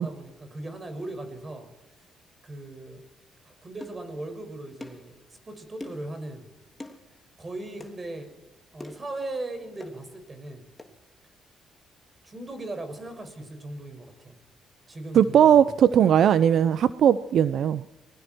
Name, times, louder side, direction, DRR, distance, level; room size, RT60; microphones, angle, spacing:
voice 1, 0.0-1.7 2.4-3.0 3.4-6.5 7.4-8.3 8.7-10.7 12.2-14.4 14.9-15.7, right 2 dB, 30° right, 7 dB, 6.4 m, -38 dB
sound 1, 3.8-4.0 4.8-5.1 5.8-6.1 6.8-7.0 7.8-8.0 8.8-9.1 9.8-10.0 10.8-10.9, left 2 dB, 15° left, 2.9 m, -42 dB
voice 2, 15.1-17.8, right 9 dB, 65° right, 14 dB, 0.7 m, -19 dB
29.0 x 21.0 x 4.7 m, 0.99 s
cardioid pair, 90°, 0 cm